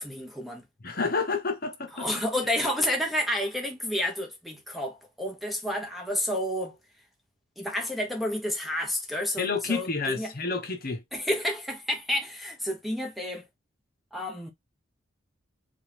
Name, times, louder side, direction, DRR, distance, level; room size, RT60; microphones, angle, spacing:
voice 1, 0.0-0.6 2.0-6.8 7.6-10.3 11.1-13.5 14.1-14.5, left 1 dB, ahead, 1.1 m, -30 dB
voice 2, 0.8-2.1 9.4-11.0, left 4 dB, 50° left, 1.1 m, -29 dB
5.4 x 2.6 x 3.4 m
head